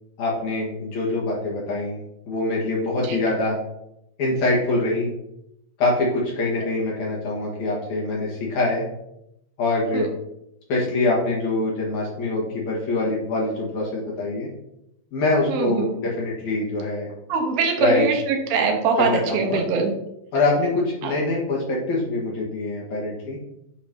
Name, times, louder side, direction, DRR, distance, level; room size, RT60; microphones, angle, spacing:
voice 1, 0.2-2.0 2.3-3.6 4.2-5.1 5.8-8.8 9.6-10.1 10.7-14.5 15.1-17.1 17.8-18.1 19.0-19.6 20.3-23.4, left 2 dB, 60° left, -4 dB, 2.7 m, -24 dB
voice 2, 15.5-15.9 17.3-19.9 21.0-21.1, right 5 dB, 85° right, 3 dB, 2.7 m, -22 dB
8.6 x 3.0 x 5.1 m, 0.82 s
omnidirectional pair, 4.0 m